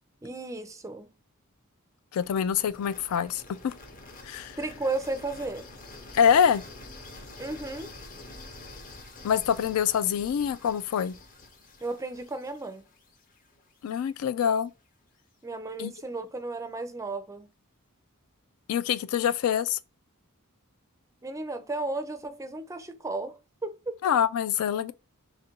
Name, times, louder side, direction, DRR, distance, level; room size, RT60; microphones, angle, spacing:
voice 1, 0.2-1.1 4.6-5.7 7.4-7.9 11.8-12.8 15.4-17.5 21.2-24.0, right 2 dB, 15° right, 0.4 m, -34 dB
voice 2, 2.1-3.7 4.2-4.6 6.1-6.6 9.2-11.1 13.8-14.7 15.8-15.9 18.7-19.8 24.0-24.9, left 8 dB, 75° left, 0.3 m, -25 dB
sound 1, 2.2-14.1, left 2 dB, 40° left, 0.7 m, -47 dB
3.0 x 2.5 x 4.3 m
head